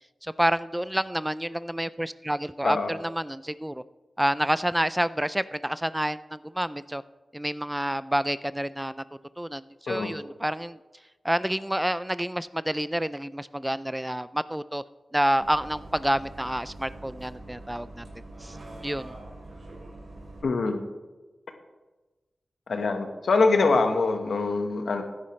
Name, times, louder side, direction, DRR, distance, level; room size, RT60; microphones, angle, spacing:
voice 1, 0.2-3.8 4.2-7.0 7.3-9.0 9.4-10.8 11.2-14.8 15.1-18.1 18.4-18.6 18.8-19.1, right 1 dB, 10° right, 15 dB, 0.3 m, -28 dB
Bus, 15.4-20.4, right 2 dB, 70° right, 3.4 m, -44 dB
voice 2, 20.4-20.8 22.7-25.0, left 3 dB, 75° left, 5 dB, 1.3 m, -24 dB
16.0 x 9.7 x 3.2 m, 1.2 s
wide cardioid pair, 70°, 0 cm